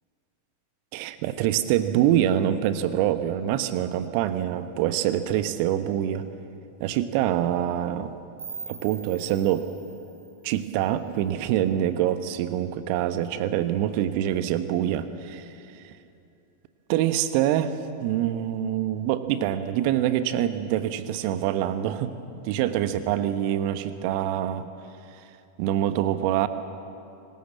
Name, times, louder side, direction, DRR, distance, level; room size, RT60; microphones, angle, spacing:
voice 1, 0.9-6.3 6.8-8.1 8.7-9.6 10.4-15.5 15.8-16.0 16.9-22.1 22.4-24.7 25.6-26.5, right 11 dB, 45° right, 11 dB, 1.2 m, -25 dB
sound 1, 8.4-11.3, right 5 dB, 70° right, 5.3 m, -43 dB
25.5 x 20.0 x 7.6 m, 2.7 s
figure-of-eight pair, 90°, 0 cm